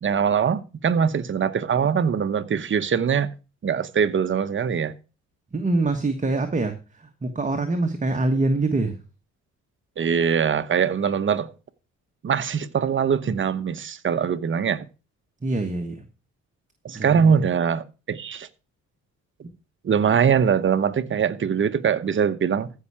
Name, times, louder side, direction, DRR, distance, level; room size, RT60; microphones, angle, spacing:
voice 1, 0.0-3.3 3.6-4.9 10.0-11.5 12.2-14.8 16.8-18.5 19.8-22.7, right 7 dB, 40° right, 0.9 m, -22 dB
voice 2, 5.5-9.0 15.4-16.0 16.9-17.3, right 2 dB, 25° right, 1.4 m, -25 dB
14.5 x 5.6 x 4.8 m
cardioid pair, 90°, 30 cm